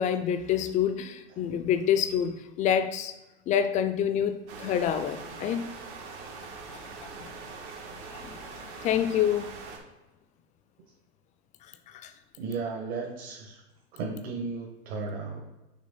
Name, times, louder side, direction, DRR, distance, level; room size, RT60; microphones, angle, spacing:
voice 1, 0.0-3.1 3.5-5.8 6.7-7.3 8.1-8.4 8.8-9.5 11.9-12.1, left 9 dB, 25° left, 11 dB, 0.4 m, -27 dB
sound 1, 4.5-9.8, right 4 dB, 80° right, 1.7 m, -42 dB
voice 2, 12.4-13.6 13.9-15.4, right 4 dB, 60° right, -2 dB, 1.6 m, -34 dB
6.6 x 3.3 x 5.4 m, 1.0 s
supercardioid pair, 130°, 34 cm